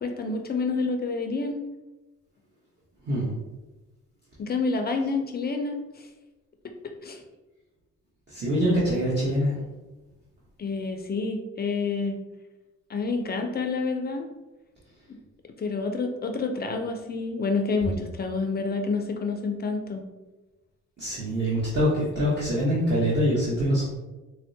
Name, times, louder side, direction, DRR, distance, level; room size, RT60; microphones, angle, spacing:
voice 1, 0.0-1.6 4.4-6.1 7.0-7.2 10.6-12.2 12.9-14.2 15.6-20.0, left 4 dB, 35° left, 4 dB, 0.4 m, -28 dB
voice 2, 8.3-9.6 21.0-24.0, equal, 35° right, -7 dB, 1.0 m, -24 dB
4.3 x 2.1 x 2.6 m, 1.1 s
cardioid pair, 90°, 30 cm